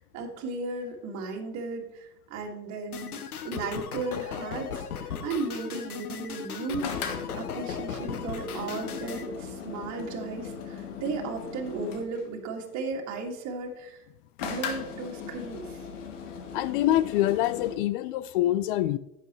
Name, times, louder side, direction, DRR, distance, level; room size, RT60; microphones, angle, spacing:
voice 1, 0.0-3.2 3.4-6.9 7.4-14.0 14.4-15.8, right 3 dB, 40° right, 2.2 m, -35 dB
sound 1, 2.9-9.3, left 7 dB, 85° left, 0.9 m, -37 dB
sound 2, 6.8-12.2 14.4-17.8, left 6 dB, 55° left, 1.5 m, -38 dB
voice 2, 16.5-19.0, left 13 dB, 40° left, 0.4 m, -25 dB
11.0 x 8.4 x 3.1 m
hypercardioid pair, 95°, 44 cm